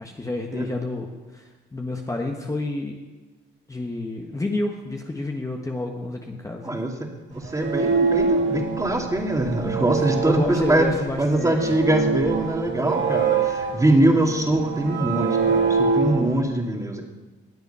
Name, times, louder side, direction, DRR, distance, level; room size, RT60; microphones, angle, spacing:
voice 1, 0.0-3.0 3.7-6.8 10.1-11.6, left 2 dB, 15° left, 1 dB, 1.3 m, -29 dB
voice 2, 6.6-10.9 11.2-17.0, right 1 dB, 15° right, 2 dB, 2.3 m, -23 dB
sound 1, 7.4-16.4, right 5 dB, 70° right, 2.2 m, -25 dB
19.0 x 8.2 x 5.6 m, 1.3 s
cardioid pair, 90°, 20 cm